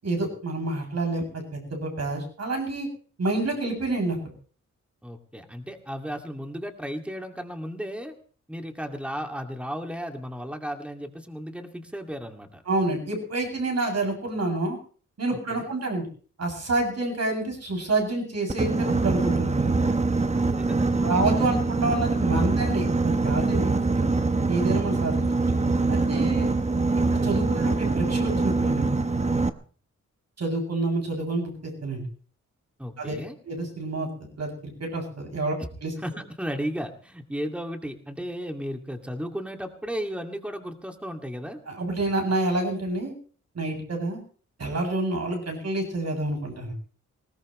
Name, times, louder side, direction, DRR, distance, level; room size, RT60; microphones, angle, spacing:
voice 1, 0.0-2.9 3.2-4.2 12.7-14.8 15.2-16.1 16.4-19.8 21.0-24.1 24.5-25.3 25.9-26.5 27.2-29.0 30.4-32.0 33.0-33.1 33.5-35.5 35.8-35.9 41.7-43.1 43.5-44.2 44.6-46.7, right 2 dB, 60° right, 2 dB, 7.5 m, -28 dB
voice 2, 5.0-8.1 8.5-12.6 15.5-15.7 20.3-21.6 26.1-26.4 32.8-33.4 35.6-35.7 36.0-41.6, equal, 5° right, 4 dB, 2.5 m, -35 dB
Boat Water vehicle, 18.5-29.5, right 3 dB, 20° right, 1.0 m, -24 dB
20.5 x 19.0 x 3.3 m, 0.42 s
wide cardioid pair, 95°, 30 cm